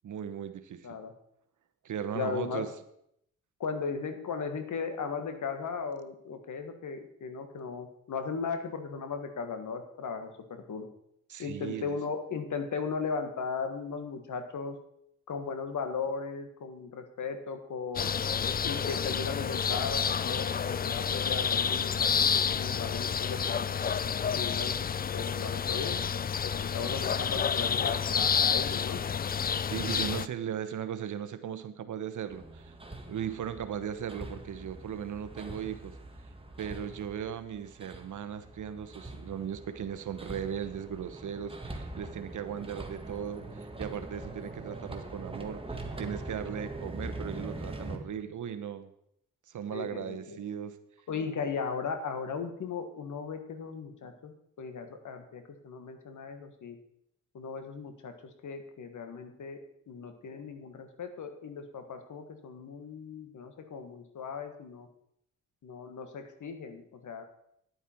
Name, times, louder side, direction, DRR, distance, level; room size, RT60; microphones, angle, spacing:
voice 1, 0.0-0.9 1.8-2.7 11.3-11.9 29.6-32.7 33.1-35.9 36.6-48.9 49.5-50.8, right 8 dB, 70° right, 11 dB, 1.0 m, -37 dB
voice 2, 2.1-2.7 3.6-10.9 11.4-14.8 15.3-18.1 18.6-23.7 24.3-24.7 25.1-26.0 26.4-29.0 49.7-50.4 51.1-56.8 57.3-58.1 58.4-59.6 59.9-64.9 65.6-67.3, left 5 dB, 70° left, 7 dB, 1.7 m, -37 dB
sound 1, 18.0-30.3, left 7 dB, 30° left, 0.4 m, -29 dB
Hammer, 32.3-48.0, right 2 dB, 15° right, 1.6 m, -43 dB
10.0 x 9.2 x 4.5 m, 0.75 s
cardioid pair, 75°, 31 cm